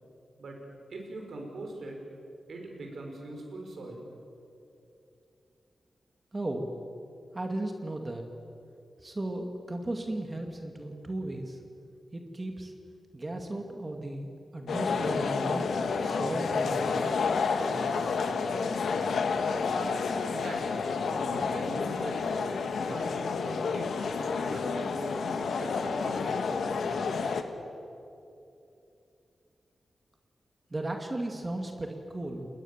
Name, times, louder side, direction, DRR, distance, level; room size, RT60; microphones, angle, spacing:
voice 1, 0.9-2.0 2.5-4.1 20.2-24.0 24.2-27.3, right 2 dB, 75° right, 2 dB, 5.9 m, -42 dB
voice 2, 6.3-6.6 7.3-8.2 9.0-11.6 12.1-12.7 13.1-17.1 17.4-18.2 30.7-32.5, right 1 dB, 25° right, 3 dB, 2.2 m, -36 dB
sound 1, 14.7-27.4, left 5 dB, 85° left, 1.6 m, -30 dB
29.5 x 21.0 x 7.4 m, 2.7 s
wide cardioid pair, 105°, 0 cm